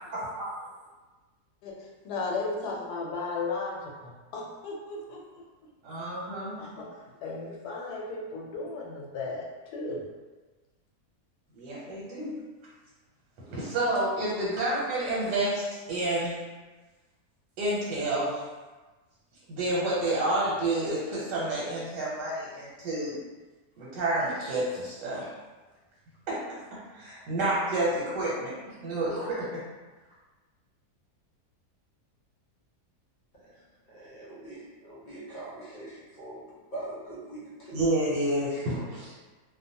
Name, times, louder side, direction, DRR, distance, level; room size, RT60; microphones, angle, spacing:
voice 1, 0.1-0.5 5.8-6.6 11.5-12.4 13.5-16.4 17.6-18.4 19.5-23.2 23.8-25.3 26.3-26.4 27.0-28.5 28.8-29.6 37.7-39.2, right 1 dB, 90° right, -7 dB, 1.3 m, -29 dB
voice 2, 1.6-5.2 6.6-10.1, left 3 dB, 75° left, -2 dB, 1.1 m, -35 dB
voice 3, 33.9-36.4 36.7-37.8 38.5-38.8, right 2 dB, 45° left, -9 dB, 0.6 m, -42 dB
2.8 x 2.1 x 2.7 m, 1.3 s
omnidirectional pair, 1.8 m